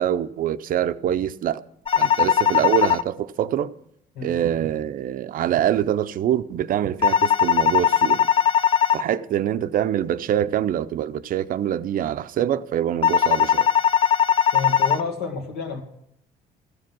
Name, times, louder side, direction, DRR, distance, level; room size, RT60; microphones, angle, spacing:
voice 1, 0.0-1.6 2.0-3.7 4.2-8.3 8.9-13.7, right 10 dB, 55° right, 0.5 m, -24 dB
sound 1, 1.9-3.0 7.0-9.0 13.0-15.0, left 8 dB, 35° left, 0.4 m, -19 dB
voice 2, 14.5-15.8, left 4 dB, 75° left, 2.1 m, -30 dB
14.5 x 7.6 x 6.0 m
cardioid pair, 110°, 17 cm